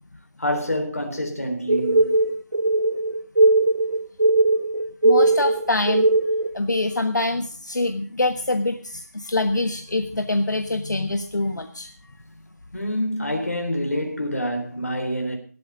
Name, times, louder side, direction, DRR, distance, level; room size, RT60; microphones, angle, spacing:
voice 1, 0.4-2.2 12.7-15.4, equal, 55° left, 3.8 m, -26 dB
sound 1, 1.7-6.5, right 2 dB, 80° right, 1.1 m, -19 dB
voice 2, 5.0-6.1 6.5-11.9, left 2 dB, 90° left, 1.3 m, -25 dB
18.0 x 8.5 x 5.1 m
figure-of-eight pair, 175°, 9 cm